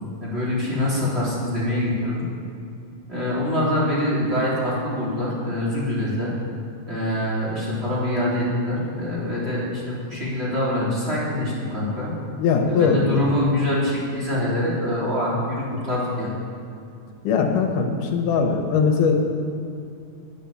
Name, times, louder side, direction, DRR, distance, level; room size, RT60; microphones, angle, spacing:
voice 1, 0.2-2.3 3.1-6.3 6.9-12.1 12.7-16.3, left 1 dB, 20° right, -8 dB, 3.1 m, -24 dB
voice 2, 12.4-13.3 17.2-19.2, left 5 dB, 80° left, 3 dB, 2.6 m, -20 dB
10.5 x 9.2 x 7.0 m, 2.4 s
omnidirectional pair, 3.8 m